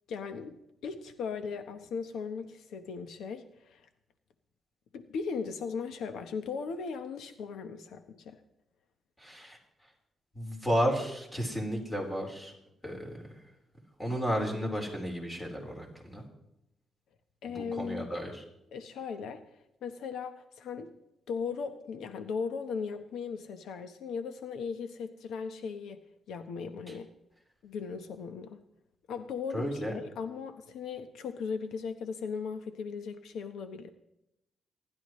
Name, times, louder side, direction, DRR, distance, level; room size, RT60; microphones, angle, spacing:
voice 1, 0.1-0.5 0.8-3.9 4.9-8.4 17.4-18.1 18.7-19.4 19.8-20.9 21.3-26.0 26.3-27.1 27.6-28.6 29.1-33.9, left 5 dB, 85° left, 8 dB, 1.1 m, -37 dB
voice 2, 9.2-9.6 10.4-12.5 12.8-13.3 14.0-16.2 17.5-18.4 26.9-27.0 29.5-29.9, equal, 10° left, 0 dB, 4.2 m, -33 dB
29.0 x 12.0 x 3.2 m, 0.84 s
cardioid pair, 125°, 0 cm